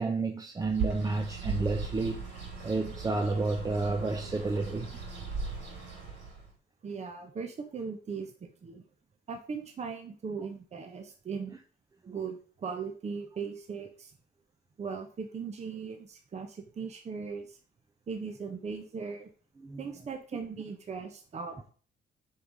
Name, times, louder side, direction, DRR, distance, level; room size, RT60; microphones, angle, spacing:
voice 1, 0.0-2.2 2.6-4.9 12.0-12.1 19.6-19.9, right 3 dB, 20° right, 0.6 m, -30 dB
Bird, 0.6-6.5, right 5 dB, 80° right, 4.7 m, -38 dB
voice 2, 6.8-8.8 9.3-11.6 12.1-14.1 14.8-17.6 18.1-19.3 19.8-21.7, right 5 dB, 35° right, 1.0 m, -39 dB
6.7 x 5.7 x 5.1 m
cardioid pair, 145°, 19 cm